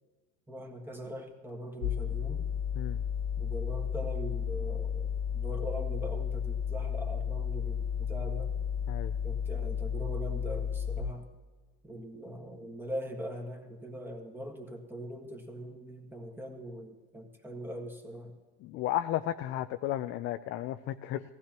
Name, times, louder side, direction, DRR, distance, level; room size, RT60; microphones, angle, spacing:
voice 1, 0.5-2.4 3.4-8.5 9.2-11.3 11.8-18.4, right 1 dB, 5° right, 3 dB, 1.6 m, -41 dB
sound 1, 1.8-11.0, left 7 dB, 75° left, 0.9 m, -33 dB
voice 2, 18.6-21.2, left 13 dB, 35° left, 9 dB, 0.4 m, -33 dB
18.5 x 15.5 x 3.0 m, 1.4 s
supercardioid pair, 125°, 35 cm